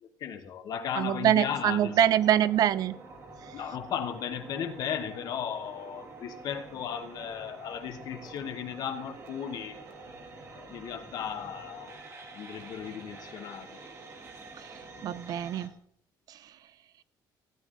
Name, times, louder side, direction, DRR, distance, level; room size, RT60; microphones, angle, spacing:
voice 1, 0.0-1.9 3.5-9.8 10.5-12.0 12.3-13.8 15.0-15.2, left 8 dB, 55° left, 7 dB, 1.1 m, -36 dB
voice 2, 1.0-3.0 14.6-15.7 16.3-16.5, right 11 dB, 55° right, 18 dB, 0.5 m, -25 dB
sound 1, 1.6-15.7, right 3 dB, 35° right, 1.6 m, -47 dB
15.5 x 9.2 x 3.8 m, 0.66 s
cardioid pair, 165°, 8 cm